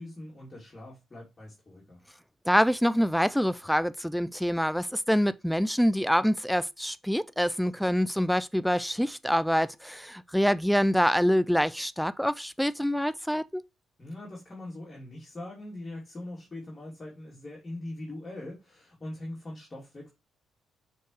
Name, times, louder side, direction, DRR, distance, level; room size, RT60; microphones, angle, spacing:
voice 1, 0.0-2.0 14.0-20.1, left 1 dB, 25° left, 2.9 m, -42 dB
voice 2, 2.5-13.6, equal, ahead, 0.3 m, -26 dB
6.6 x 4.5 x 3.2 m
cardioid pair, 90°, 0 cm